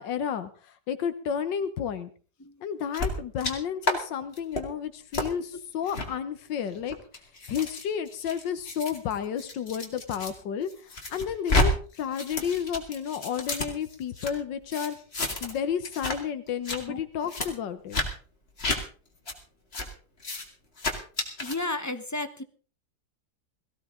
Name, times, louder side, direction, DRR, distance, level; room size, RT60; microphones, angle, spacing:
voice 1, 0.0-2.1 2.6-7.0 7.5-15.0 15.4-18.0, left 8 dB, 85° left, 11 dB, 1.6 m, -31 dB
sound 1, 2.9-3.5 3.8-4.0 4.3-4.6 5.1-5.3 5.9-6.1 6.7-10.3 10.7-11.7 11.9-14.3 14.7-15.6 15.8-16.2 16.5-16.8 17.3-17.5 17.9-18.1 18.6-18.8 19.3-19.4 19.7-19.9 20.2-20.4 20.8-21.6, left 2 dB, 35° left, 2.5 m, -30 dB
voice 2, 21.4-22.4, left 2 dB, 15° left, 9 dB, 0.5 m, -32 dB
17.5 x 15.5 x 3.7 m, 0.39 s
omnidirectional pair, 1.9 m